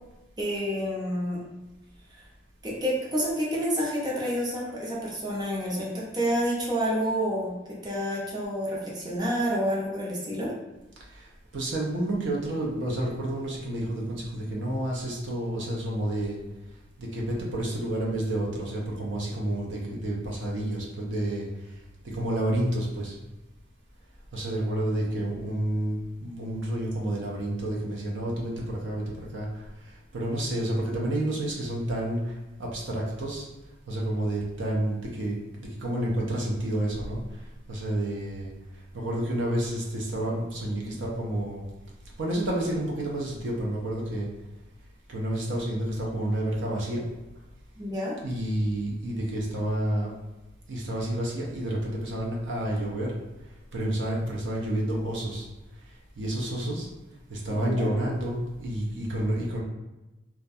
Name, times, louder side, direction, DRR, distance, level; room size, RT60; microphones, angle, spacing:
voice 1, 0.4-1.4 2.6-10.5 47.8-48.1 57.5-57.9, equal, 20° right, -5 dB, 0.5 m, -29 dB
voice 2, 11.5-16.4 17.0-21.5 22.0-23.1 24.3-29.5 30.1-32.2 32.6-33.5 33.9-37.2 37.7-38.5 38.9-41.6 42.2-44.3 45.1-47.0 48.2-50.1 50.7-53.1 53.7-55.5 56.2-56.9 57.3-59.6, right 1 dB, 70° right, -3 dB, 0.5 m, -29 dB
2.3 x 2.1 x 2.6 m, 1.0 s
head